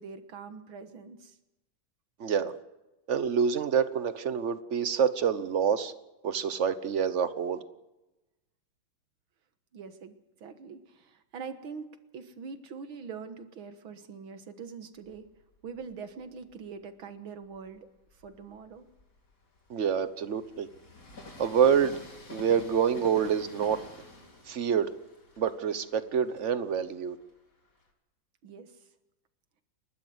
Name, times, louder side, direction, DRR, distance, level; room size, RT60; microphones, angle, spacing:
voice 1, 0.0-1.4 9.7-10.1 10.4-11.9 12.1-15.2 15.6-17.9 18.2-18.9 28.4-28.7, right 5 dB, 80° right, 9 dB, 2.2 m, -43 dB
voice 2, 2.2-2.5 3.1-5.9 6.2-7.6 19.7-20.7 21.4-21.9 22.3-23.8 24.5-24.9 25.4-27.2, right 7 dB, 45° right, 13 dB, 1.0 m, -27 dB
Train, 15.0-16.7 17.3-27.9, left 2 dB, 40° left, 3.1 m, -51 dB
29.5 x 12.0 x 7.9 m, 1.0 s
omnidirectional pair, 2.2 m